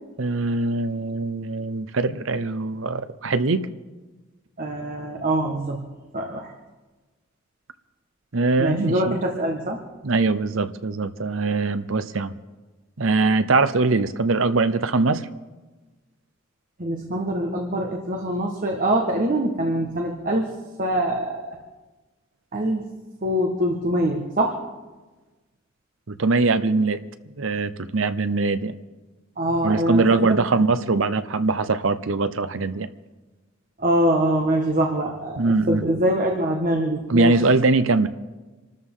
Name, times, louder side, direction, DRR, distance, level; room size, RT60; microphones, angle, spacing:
voice 1, 0.2-3.7 8.3-9.0 10.0-12.3 13.0-15.3 26.1-27.0 27.4-28.8 29.6-32.9 35.4-35.9 37.1-38.1, right 3 dB, 75° right, 12 dB, 0.8 m, -22 dB
voice 2, 4.6-5.8 6.1-6.5 8.6-9.8 16.8-20.5 20.8-21.6 22.5-22.8 23.2-24.6 29.4-30.4 33.8-37.4, right 1 dB, 45° right, 1 dB, 1.6 m, -24 dB
26.5 x 13.5 x 3.8 m, 1.2 s
head